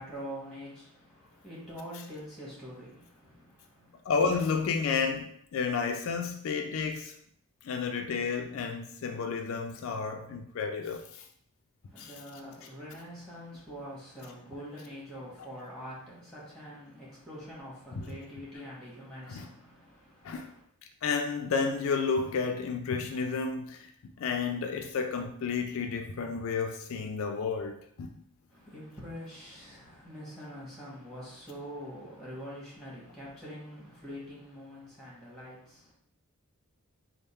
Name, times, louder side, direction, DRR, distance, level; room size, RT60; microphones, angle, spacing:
voice 1, 0.0-4.0 11.9-20.6 28.5-35.9, equal, ahead, 1.2 m, -45 dB
voice 2, 4.1-7.2 7.6-11.2 12.0-12.1 17.9-18.2 19.3-19.5 20.2-20.5 21.0-23.9 24.2-28.2, left 5 dB, 70° left, 0.3 m, -31 dB
3.5 x 2.0 x 4.2 m
head